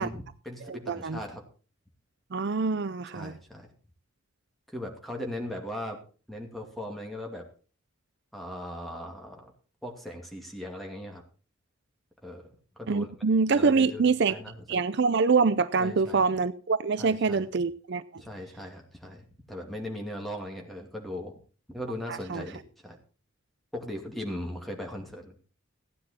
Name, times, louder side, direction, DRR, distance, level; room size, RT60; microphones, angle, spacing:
voice 1, 0.0-1.4 3.1-3.7 4.7-6.0 6.3-7.5 8.3-9.5 9.8-11.2 12.2-12.5 12.8-13.1 13.5-14.0 14.3-14.6 15.8-16.3 17.0-17.5 18.2-21.3 21.7-23.0 23.7-25.3, left 1 dB, ahead, 2.4 m, -38 dB
voice 2, 0.7-1.2 2.3-3.3 12.9-14.3 14.7-18.0 22.1-22.4, right 4 dB, 55° right, 0.5 m, -25 dB
15.5 x 9.8 x 4.3 m
head